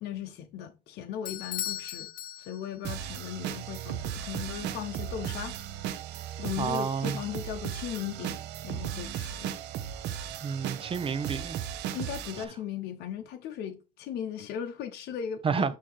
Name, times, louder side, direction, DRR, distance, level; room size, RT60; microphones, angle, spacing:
voice 1, 0.0-2.1 2.4-5.9 6.4-9.5 11.9-15.8, left 9 dB, 75° left, 0.9 m, -37 dB
Bell / Doorbell, 1.3-3.0, left 12 dB, 60° left, 0.6 m, -37 dB
sound 1, 2.8-12.4, right 10 dB, 85° right, 0.8 m, -36 dB
voice 2, 6.6-7.2 10.4-11.6 15.4-15.8, right 6 dB, 35° right, 0.6 m, -30 dB
8.5 x 2.9 x 4.5 m
cardioid pair, 110°, 17 cm